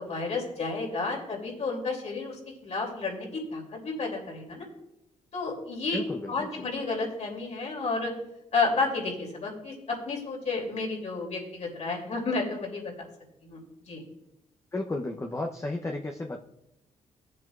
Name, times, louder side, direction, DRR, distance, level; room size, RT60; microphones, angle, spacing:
voice 1, 0.0-4.7 5.3-6.0 6.3-8.1 8.5-13.1 13.4-13.6 13.9-14.0, left 3 dB, 55° left, 0 dB, 2.9 m, -31 dB
voice 2, 5.9-6.5 14.7-16.4, left 2 dB, 20° left, 1 dB, 0.8 m, -33 dB
15.5 x 7.7 x 2.5 m, 0.87 s
cardioid pair, 75°, 14 cm